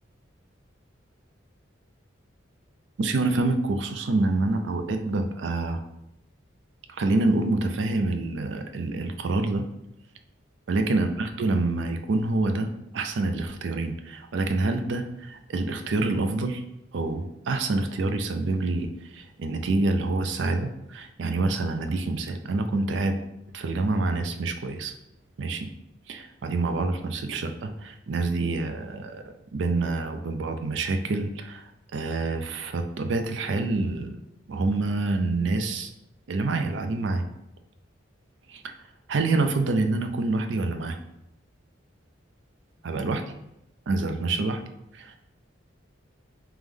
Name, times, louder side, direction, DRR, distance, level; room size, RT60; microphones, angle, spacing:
voice 1, 3.0-5.8 6.9-9.7 10.7-16.6 16.9-18.9 19.1-23.2 23.5-24.9 25.4-25.7 26.1-29.2 29.5-31.6 31.9-34.1 34.5-35.9 36.3-37.2 38.5-38.6 39.1-41.0 42.8-43.2 43.9-44.6 44.9-45.2, right 3 dB, 65° right, 7 dB, 0.4 m, -27 dB
3.3 x 3.0 x 3.6 m, 0.83 s
head